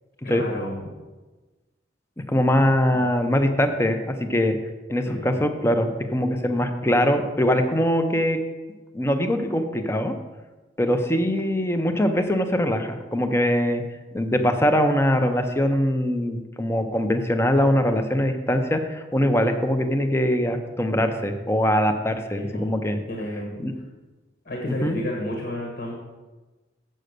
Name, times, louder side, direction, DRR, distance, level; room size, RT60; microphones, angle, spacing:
voice 1, 0.2-0.8 2.6-3.2 5.0-5.4 22.2-22.7 23.1-23.6 24.4-25.9, left 1 dB, 55° left, -1 dB, 1.5 m, -32 dB
voice 2, 2.3-4.6 4.9-8.4 8.9-10.1 10.8-13.8 14.1-23.0 23.6-23.7 24.7-25.0, equal, 15° left, 7 dB, 0.7 m, -22 dB
7.7 x 6.5 x 6.6 m, 1.2 s
head